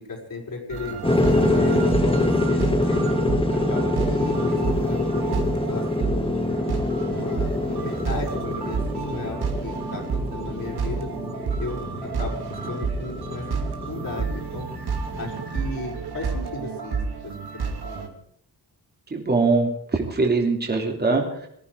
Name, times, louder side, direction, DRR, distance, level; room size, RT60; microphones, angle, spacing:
voice 1, 0.1-0.9 1.3-3.0 3.5-6.4 7.1-11.1 11.6-12.4 12.7-14.7 15.2-17.4 17.8-18.1, left 3 dB, 55° left, 0 dB, 5.4 m, -35 dB
sound 1, 0.7-18.1, right 5 dB, 75° right, 2.7 m, -30 dB
sound 2, 1.0-15.6, left 2 dB, 15° left, 1.6 m, -25 dB
voice 2, 19.1-21.5, right 3 dB, 25° right, 1 dB, 3.1 m, -22 dB
20.5 x 14.0 x 4.8 m, 0.68 s
wide cardioid pair, 170°, 39 cm